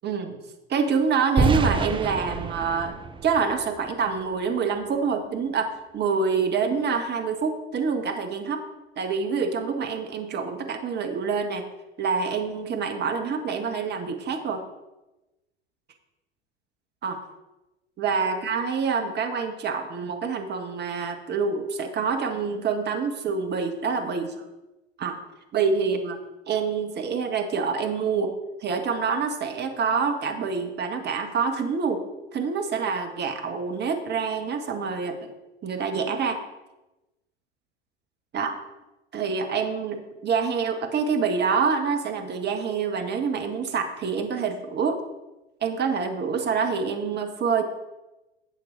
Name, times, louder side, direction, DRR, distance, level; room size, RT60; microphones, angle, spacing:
voice 1, 0.0-0.4 0.7-2.9 3.2-8.6 9.0-11.6 12.0-14.6 17.0-17.2 18.0-24.4 25.0-25.2 25.5-26.2 26.5-28.3 28.6-32.0 32.3-35.3 35.6-36.4 38.3-38.6 39.1-45.0 45.6-47.6, right 5 dB, 30° right, 5 dB, 1.6 m, -26 dB
sound 1, 1.4-4.3, right 4 dB, 15° right, 0.7 m, -27 dB
12.0 x 7.9 x 4.0 m, 1.0 s
figure-of-eight pair, 80°, 33 cm